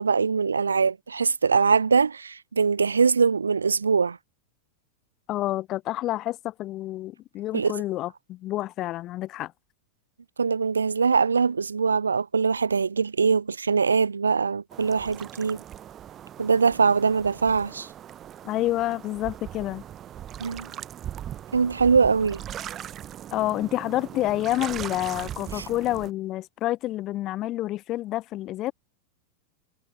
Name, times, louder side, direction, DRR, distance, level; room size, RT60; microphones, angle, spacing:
voice 1, 0.0-4.2 7.5-7.7 10.4-15.6 16.4-17.9 20.4-20.7 21.5-22.4 25.6-25.7, right 5 dB, 75° right, 0.8 m, -22 dB
voice 2, 5.3-9.5 18.4-19.8 23.3-28.7, left 15 dB, 35° left, 0.8 m, -28 dB
sound 1, 14.7-26.1, right 11 dB, 30° right, 0.7 m, -40 dB
figure-of-eight pair, 90°, 0 cm